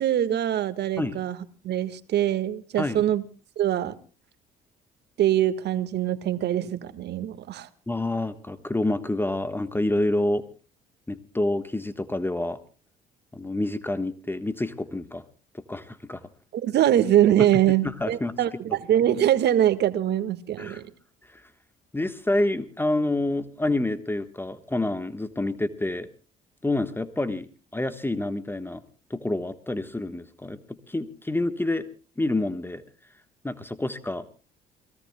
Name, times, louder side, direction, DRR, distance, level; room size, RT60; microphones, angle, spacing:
voice 1, 0.0-1.4 1.6-3.2 3.6-3.9 5.2-7.7 16.5-20.9, right 11 dB, 60° right, 12 dB, 1.6 m, -23 dB
voice 2, 7.9-10.4 11.1-12.6 13.3-15.2 15.5-16.2 18.0-18.3 20.6-20.8 21.3-21.4 21.9-26.1 26.6-27.5 27.7-28.8 29.1-31.9 32.2-32.8 33.4-34.3, left 2 dB, 10° left, 11 dB, 1.3 m, -28 dB
28.5 x 18.0 x 2.3 m, 0.36 s
hypercardioid pair, 60°, 19 cm